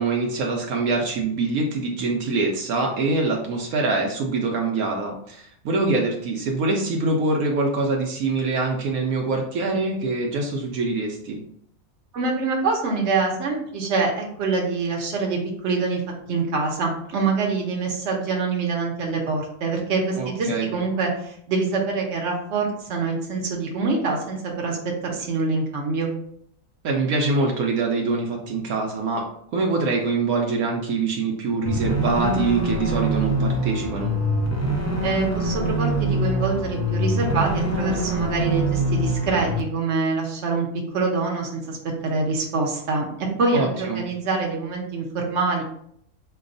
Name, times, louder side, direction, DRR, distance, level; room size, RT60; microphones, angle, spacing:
voice 1, 0.0-11.4 20.2-20.7 26.8-29.2 29.5-34.1 43.5-44.0, right 3 dB, 75° right, 0 dB, 1.1 m, -24 dB
voice 2, 12.1-16.0 16.3-24.8 25.0-26.1 35.0-40.7 40.9-41.8 42.0-45.6, right 4 dB, 55° right, 0 dB, 1.2 m, -25 dB
sound 1, 31.7-39.6, right 1 dB, 25° left, 0.4 m, -24 dB
4.9 x 2.3 x 3.8 m, 0.68 s
omnidirectional pair, 1.5 m